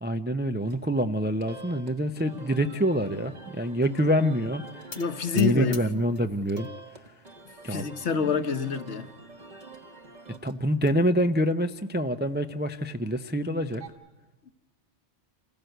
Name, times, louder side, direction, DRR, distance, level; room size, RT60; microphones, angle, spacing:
voice 1, 0.0-4.6 5.3-6.7 7.6-7.9 10.4-13.8, equal, 15° right, 0.4 m, -26 dB
sound 1, 0.6-13.9, right 3 dB, 35° right, 1.5 m, -48 dB
sound 2, 4.9-6.7 7.1-7.7 8.3-8.4 8.7-8.8 9.1-9.2 10.3-11.0, left 4 dB, 35° left, 0.9 m, -46 dB
voice 2, 5.0-5.8 7.7-9.1, left 6 dB, 65° left, 1.3 m, -27 dB
26.5 x 16.0 x 7.9 m
omnidirectional pair, 1.3 m